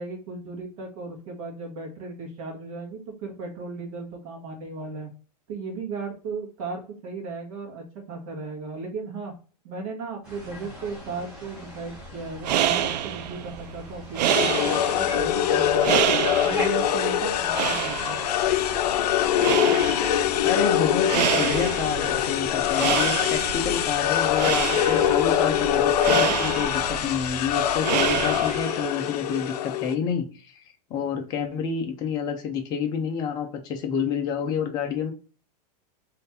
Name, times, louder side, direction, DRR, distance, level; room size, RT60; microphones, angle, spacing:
voice 1, 0.0-5.1 5.5-9.3 9.6-15.9 16.4-18.2, right 3 dB, 55° right, 1.8 m, -35 dB
sound 1, 10.2-28.6, left 1 dB, 5° right, 1.3 m, -41 dB
sound 2, 12.2-28.9, right 11 dB, 90° right, 0.5 m, -28 dB
sound 3, 14.3-29.9, left 11 dB, 70° left, 0.5 m, -24 dB
voice 2, 20.4-30.6 30.9-35.1, left 6 dB, 20° left, 0.6 m, -28 dB
3.8 x 3.4 x 4.2 m
supercardioid pair, 175°, 21 cm